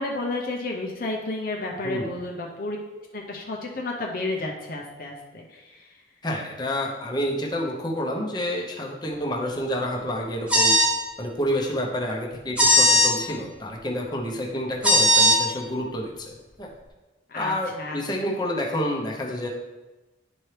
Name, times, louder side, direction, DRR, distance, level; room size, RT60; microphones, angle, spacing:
voice 1, 0.0-2.8 3.1-5.9 17.3-18.4, left 2 dB, 50° left, 0 dB, 0.7 m, -32 dB
voice 2, 6.2-10.7 11.2-16.7 17.3-19.5, equal, 20° left, -2 dB, 0.9 m, -29 dB
sound 1, 10.5-10.9 12.6-13.1 14.8-15.4, equal, 5° right, 1.0 m, -17 dB
10.5 x 4.5 x 3.3 m, 1.1 s
head